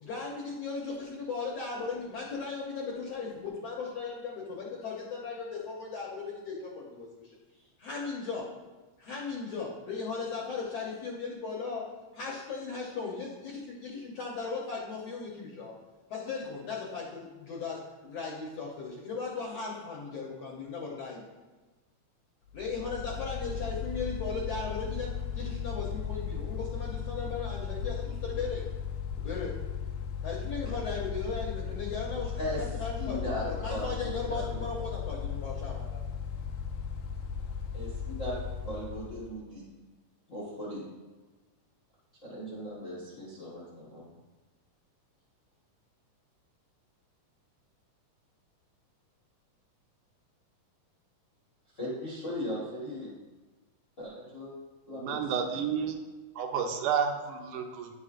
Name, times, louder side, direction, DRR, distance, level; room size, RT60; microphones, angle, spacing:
voice 1, 0.0-7.4 7.8-8.5 9.0-11.8 12.1-15.7 16.1-21.2 22.5-28.7 29.2-29.5 30.2-32.3 32.6-33.2 33.5-36.0, left 4 dB, 70° left, -3 dB, 1.6 m, -37 dB
Mechanical fan, 22.5-39.3, left 7 dB, 90° left, 1.5 m, -36 dB
voice 2, 33.1-34.6 37.7-39.7 40.3-40.8 42.2-44.1 51.7-53.1 54.0-54.5 54.9-55.5, equal, 50° left, -7 dB, 0.9 m, -38 dB
voice 3, 54.9-55.9 56.4-57.9, right 7 dB, 80° right, 4 dB, 2.1 m, -31 dB
9.4 x 5.5 x 2.4 m, 1.2 s
omnidirectional pair, 3.7 m